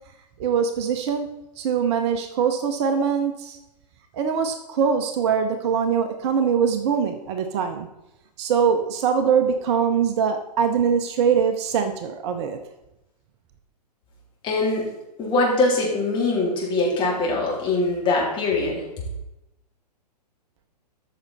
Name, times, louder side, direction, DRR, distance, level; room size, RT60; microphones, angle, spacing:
voice 1, 0.4-3.6 4.1-7.9 8.4-12.6, right 7 dB, 40° right, 7 dB, 0.9 m, -23 dB
voice 2, 14.4-14.8 15.2-18.8, left 2 dB, 25° left, -3 dB, 3.6 m, -22 dB
13.5 x 6.4 x 4.2 m, 0.93 s
figure-of-eight pair, 115°, 21 cm